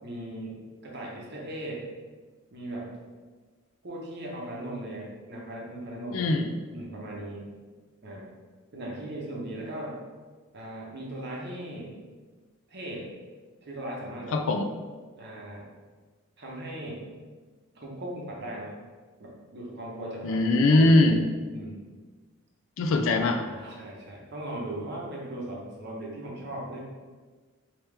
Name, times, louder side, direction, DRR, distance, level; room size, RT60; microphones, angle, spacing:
voice 1, 0.0-1.9 2.5-3.0 3.8-6.3 6.7-7.5 8.0-8.3 8.7-10.0 10.5-12.0 12.7-13.1 13.6-14.4 15.2-15.7 16.4-17.1 17.7-18.7 19.2-21.2 21.5-21.9 23.5-26.8, right 1 dB, 50° right, -3 dB, 0.8 m, -38 dB
voice 2, 6.1-6.6 14.3-14.7 20.2-21.2 22.8-23.5, left 2 dB, 60° left, 4 dB, 0.3 m, -21 dB
3.4 x 2.9 x 3.3 m, 1.4 s
head